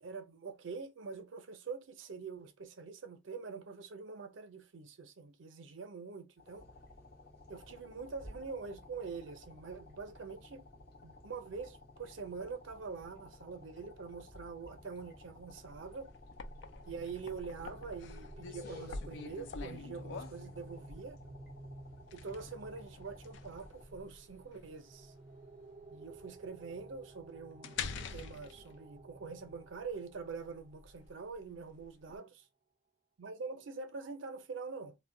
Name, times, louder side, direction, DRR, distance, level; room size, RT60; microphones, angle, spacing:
voice 1, 0.0-6.7 7.5-10.7 11.0-16.1 16.9-21.2 22.1-25.1 25.9-32.5 33.2-35.0, right 4 dB, 90° right, 0.5 m, -45 dB
sound 1, 6.4-23.9, left 2 dB, 55° left, 0.8 m, -55 dB
sound 2, 15.7-32.2, left 4 dB, 70° left, 0.4 m, -47 dB
sound 3, 16.5-31.2, right 2 dB, 35° right, 0.4 m, -54 dB
2.1 x 2.1 x 3.6 m
head